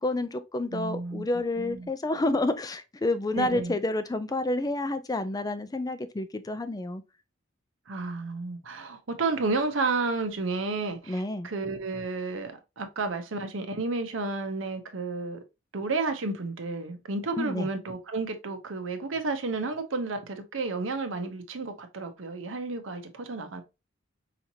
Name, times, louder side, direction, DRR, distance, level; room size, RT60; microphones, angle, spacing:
voice 1, 0.0-7.0 11.1-11.5 17.4-17.7, left 2 dB, 20° left, 0.4 m, -29 dB
voice 2, 0.7-1.2 1.6-1.9 3.3-3.7 7.9-15.4 15.7-23.6, right 3 dB, 75° right, 0.8 m, -31 dB
4.9 x 2.9 x 2.6 m
head